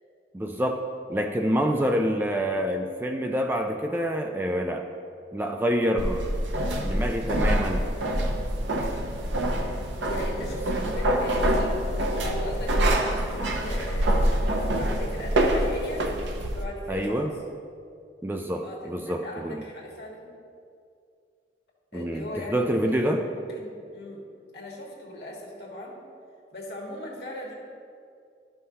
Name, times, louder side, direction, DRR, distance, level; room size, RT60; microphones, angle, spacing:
voice 1, 0.3-0.8 1.1-4.8 5.3-6.3 6.8-7.8 16.9-17.3 18.2-19.6 21.9-23.2, equal, 10° right, 3 dB, 0.3 m, -27 dB
voice 2, 1.7-2.0 10.0-11.8 12.2-16.1 16.5-17.3 18.6-20.3 21.9-24.2 24.5-26.0 26.5-27.5, left 1 dB, 60° left, -3 dB, 1.6 m, -39 dB
sound 1, 6.0-16.6, right 1 dB, 85° right, 0.8 m, -26 dB
12.0 x 5.6 x 2.8 m, 2.4 s
head